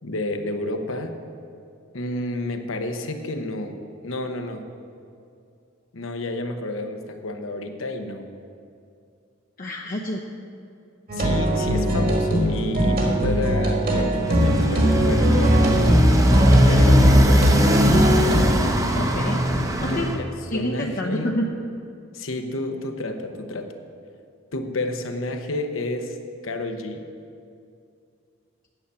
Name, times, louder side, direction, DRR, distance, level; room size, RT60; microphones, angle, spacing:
voice 1, 0.0-1.2 1.9-3.8 4.0-4.6 5.9-8.3 11.1-15.6 16.7-17.7 19.9-20.3 20.5-21.3 22.1-23.7 24.5-26.2 26.4-27.0, left 2 dB, 75° left, 6 dB, 0.9 m, -30 dB
voice 2, 9.6-10.2 11.6-11.7 16.8-17.3 18.9-19.4 19.8-20.1 20.5-21.5, left 1 dB, 45° left, -1 dB, 0.7 m, -28 dB
sound 1, 11.1-18.5, equal, 45° right, 1.7 m, -20 dB
Motorcycle, 14.2-20.2, equal, 15° right, 0.7 m, -19 dB
9.2 x 7.0 x 8.0 m, 2.4 s
head